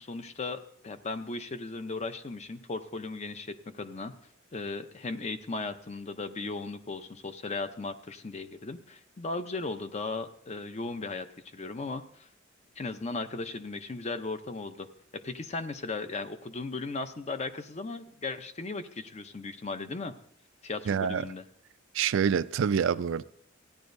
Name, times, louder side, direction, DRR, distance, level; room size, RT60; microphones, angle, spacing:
voice 1, 0.0-4.1 4.5-12.3 12.8-14.9 15.1-20.1 20.6-21.4, left 3 dB, 35° left, 0.6 m, -37 dB
voice 2, 20.9-21.2 21.9-23.2, right 7 dB, 70° right, 0.4 m, -26 dB
15.5 x 10.0 x 2.6 m
head